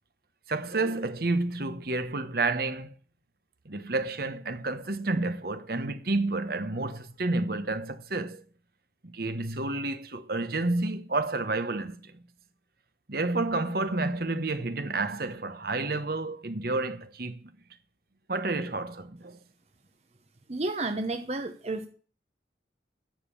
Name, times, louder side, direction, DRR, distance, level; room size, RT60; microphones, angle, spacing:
voice 1, 0.5-2.9 3.6-8.4 9.1-12.0 13.1-17.5 18.3-19.4, right 2 dB, 55° right, 1.2 m, -30 dB
voice 2, 20.5-21.9, right 2 dB, 35° right, 0.9 m, -31 dB
10.5 x 7.5 x 8.6 m
head